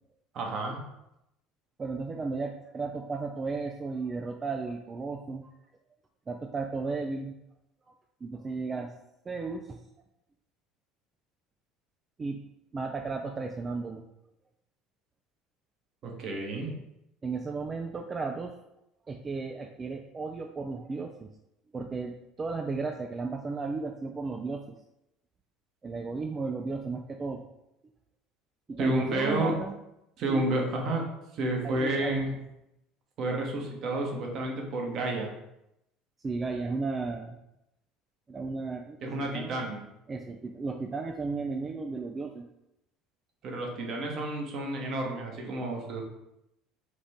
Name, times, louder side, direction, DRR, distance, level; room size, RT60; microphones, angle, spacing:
voice 1, 0.3-0.8 16.0-16.8 28.8-29.5 30.2-31.0 31.3-32.4 33.2-35.3 39.0-39.8 43.4-46.0, right 1 dB, 55° right, 1 dB, 1.1 m, -30 dB
voice 2, 1.8-5.5 6.3-7.3 8.2-8.9 9.3-9.8 12.2-12.4 12.7-14.0 17.2-18.5 19.1-21.3 21.7-24.6 25.8-27.5 28.7-29.7 30.3-30.4 31.6-32.2 36.2-37.4 38.3-39.7 40.1-42.5, right 4 dB, 30° right, 3 dB, 0.4 m, -34 dB
4.9 x 2.6 x 3.5 m, 0.85 s
hypercardioid pair, 75°, 0 cm